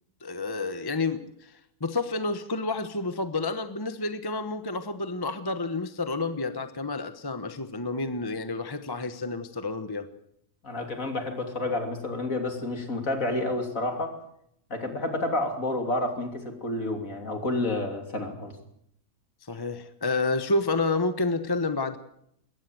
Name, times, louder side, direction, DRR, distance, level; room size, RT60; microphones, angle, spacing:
voice 1, 0.2-10.1 19.5-22.0, left 3 dB, 15° left, 10 dB, 1.0 m, -29 dB
voice 2, 10.6-14.2 14.7-18.6, left 2 dB, 55° left, 4 dB, 3.4 m, -30 dB
21.0 x 17.0 x 7.7 m, 0.72 s
omnidirectional pair, 1.7 m